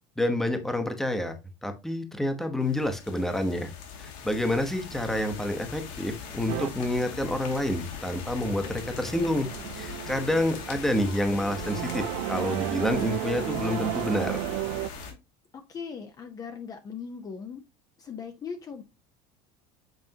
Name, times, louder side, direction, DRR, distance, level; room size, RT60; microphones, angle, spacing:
voice 1, 0.2-1.4 1.6-3.7 4.0-9.5 9.8-14.4, left 1 dB, ahead, 7 dB, 1.0 m, -28 dB
sound 1, 2.6-15.1, left 6 dB, 70° left, 2.3 m, -40 dB
sound 2, 6.5-6.7 7.8-14.9, right 19 dB, 80° right, 0.4 m, -34 dB
voice 2, 15.5-17.6 18.0-18.8, left 6 dB, 25° left, 7 dB, 0.7 m, -39 dB
7.8 x 4.2 x 2.8 m, 0.26 s
cardioid pair, 140°, 14 cm